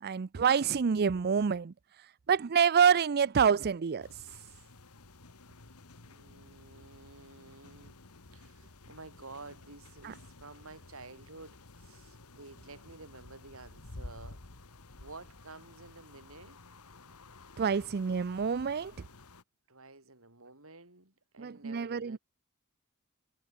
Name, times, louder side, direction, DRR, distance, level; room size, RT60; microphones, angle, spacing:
voice 1, 0.0-1.7 2.3-4.1 10.0-10.1 17.6-18.9 21.4-22.2, right 7 dB, 45° right, 0.5 m, -27 dB
sound 1, 4.0-19.4, left 2 dB, 75° left, 1.8 m, -52 dB
voice 2, 5.8-8.0 8.3-14.4 15.0-16.6 18.1-18.2 19.7-22.2, right 3 dB, 65° right, 6.7 m, -51 dB
head